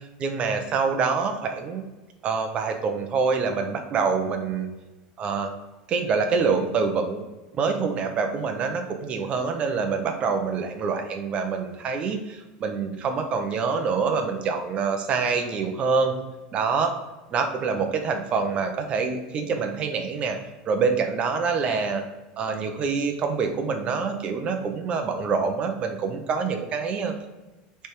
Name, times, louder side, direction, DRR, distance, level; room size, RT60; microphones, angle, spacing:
voice 1, 0.2-1.8 2.2-4.7 5.2-5.5 5.9-7.2 7.5-16.1 16.5-16.9 17.3-20.4 20.7-22.0 22.4-27.1, right 5 dB, 30° right, 5 dB, 0.8 m, -26 dB
8.1 x 3.4 x 4.6 m, 1.1 s
supercardioid pair, 155°, 4 cm